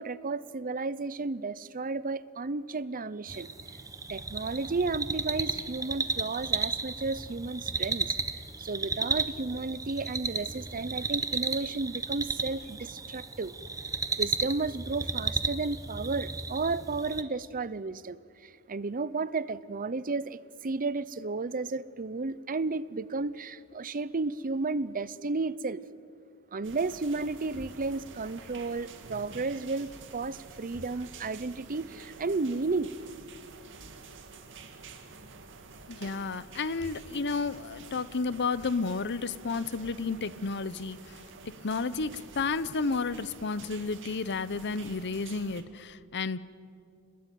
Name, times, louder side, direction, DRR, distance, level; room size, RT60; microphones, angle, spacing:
voice 1, 0.0-3.5 4.1-8.1 8.6-13.5 14.2-25.8 26.5-32.9, right 3 dB, 40° right, 17 dB, 0.7 m, -33 dB
sound 1, 3.3-17.2, right 3 dB, 15° right, 1.1 m, -34 dB
sound 2, 26.6-45.6, right 3 dB, 55° right, 2.4 m, -48 dB
voice 2, 35.9-41.2 41.6-46.4, left 4 dB, 50° left, 16 dB, 0.9 m, -32 dB
29.0 x 21.0 x 9.2 m, 2.4 s
head